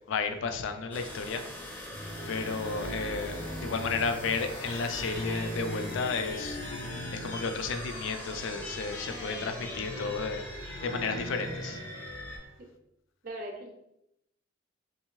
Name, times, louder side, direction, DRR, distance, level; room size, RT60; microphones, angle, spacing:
voice 1, 0.1-1.4 1.8-6.6 7.1-10.4 10.8-11.8, left 4 dB, 80° left, 8 dB, 0.3 m, -33 dB
sound 1, 0.9-12.4, equal, 10° left, 0.5 m, -43 dB
sound 2, 1.7-12.5, left 1 dB, 60° left, 0.8 m, -40 dB
voice 2, 13.2-13.7, right 1 dB, 45° right, 2 dB, 0.5 m, -39 dB
2.7 x 2.5 x 3.0 m, 0.82 s
head